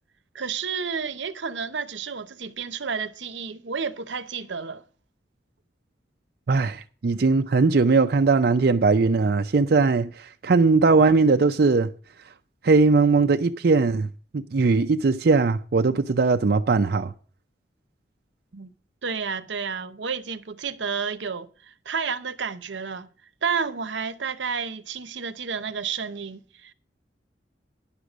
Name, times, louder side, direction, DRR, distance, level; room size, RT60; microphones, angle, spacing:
voice 1, 0.3-4.8 18.5-18.7 19.0-23.1 23.4-26.7, right 6 dB, 85° right, 0.8 m, -31 dB
voice 2, 6.5-11.9 12.6-17.1, right 4 dB, 55° right, 0.5 m, -20 dB
10.5 x 6.6 x 6.1 m
head